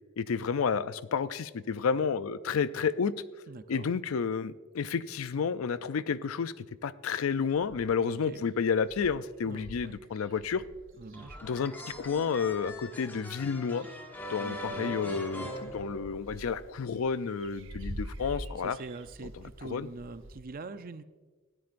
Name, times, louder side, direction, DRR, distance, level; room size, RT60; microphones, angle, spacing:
voice 1, 0.2-3.1 3.7-6.5 6.8-10.6 11.4-13.9 14.3-18.8 19.7-19.9, left 6 dB, 75° left, 15 dB, 0.4 m, -30 dB
voice 2, 3.5-3.9 8.0-8.4 9.4-10.0 11.0-11.4 14.4-15.0 18.6-21.0, right 3 dB, 40° right, 11 dB, 0.5 m, -44 dB
sound 1, 7.5-8.1 8.5-8.6 8.8-12.9 13.4-14.2 14.5-20.4, right 1 dB, 60° right, 1.0 m, -46 dB
sound 2, 11.1-16.5, left 1 dB, 10° left, 1.4 m, -41 dB
18.5 x 13.0 x 2.5 m, 1.3 s
head